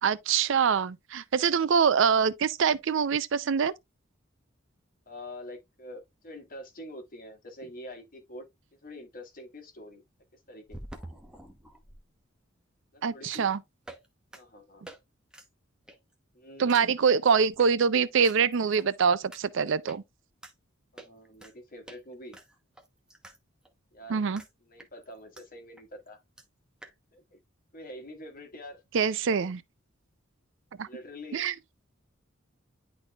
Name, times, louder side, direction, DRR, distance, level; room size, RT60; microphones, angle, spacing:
voice 1, 0.0-3.7 13.0-13.6 16.6-20.0 24.1-24.4 28.9-29.6 30.8-30.9 31.3-31.5, right 6 dB, 65° right, 0.5 m, -24 dB
voice 2, 5.1-8.5 8.8-10.0 10.5-10.8 12.9-13.5 14.3-14.9 16.3-16.8 20.9-22.4 23.9-24.3 24.7-26.2 27.1-27.4 27.7-28.8 30.9-31.5, left 1 dB, 45° left, 1.7 m, -45 dB
sound 1, 8.2-8.3 10.7-12.0 13.3-13.5 13.9-14.1 14.3-14.4 14.9-15.0 15.3-15.5 15.9-16.1 16.7-16.9 17.6-17.7 18.2-18.9 19.3-19.4 19.9-20.0 20.4-20.5 21.0-21.5 21.9-22.0 22.3-23.4 23.7-23.8 24.4-24.5 24.8-25.4 25.8-25.9 26.1-26.2 26.4-26.5 26.8-26.9, right 1 dB, 5° right, 0.9 m, -47 dB
10.5 x 4.0 x 2.3 m
head